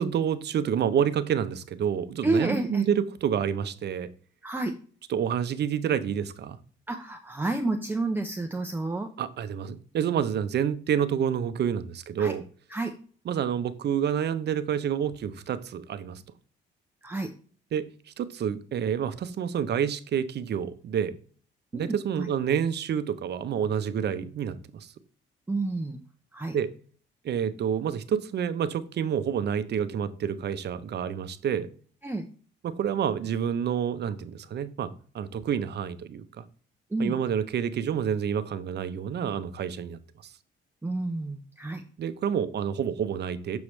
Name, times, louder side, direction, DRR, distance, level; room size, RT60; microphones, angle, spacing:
voice 1, 0.0-4.1 5.1-6.6 9.2-12.4 13.3-16.2 17.7-17.9 18.2-21.2 21.7-24.9 26.5-26.7 27.2-31.7 32.6-36.4 37.0-40.0 42.0-43.6, right 8 dB, 55° right, 13 dB, 0.7 m, -28 dB
voice 2, 2.2-2.8 4.4-4.7 6.9-9.1 12.2-12.3 12.7-12.9 17.0-17.3 21.7-22.3 25.5-26.0 26.3-26.6 32.0-32.2 36.9-37.2 40.8-41.8, right 2 dB, 10° right, 3 dB, 0.6 m, -30 dB
7.1 x 4.8 x 3.2 m, 0.43 s
cardioid pair, 90°, 20 cm